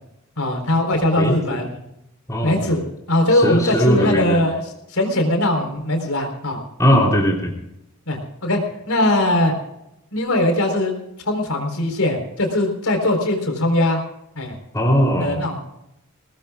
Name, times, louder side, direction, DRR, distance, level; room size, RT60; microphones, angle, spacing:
voice 1, 0.4-1.7 2.4-2.8 3.1-4.6 4.9-6.6 8.1-8.6 8.9-9.5 10.1-10.9 11.2-14.0 14.4-14.5 15.2-15.6, left 1 dB, 85° left, 4 dB, 4.1 m, -20 dB
voice 2, 1.2-1.6 2.3-2.8 3.3-4.4 6.8-7.5 14.7-15.4, equal, 15° left, -1 dB, 3.2 m, -19 dB
21.5 x 18.5 x 2.4 m, 0.83 s
head